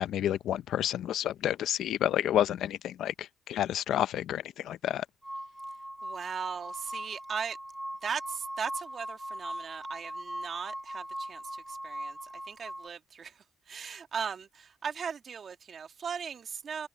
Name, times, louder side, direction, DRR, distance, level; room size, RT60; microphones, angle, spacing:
voice 1, 0.0-5.0, left 11 dB, 75° left, 0.6 m, -30 dB
sound 1, 5.2-12.9, right 1 dB, 5° right, 2.4 m, -40 dB
voice 2, 6.0-7.6 8.0-11.4 11.7-12.2 12.5-16.9, right 6 dB, 50° right, 2.0 m, -38 dB
cardioid pair, 90°, 0 cm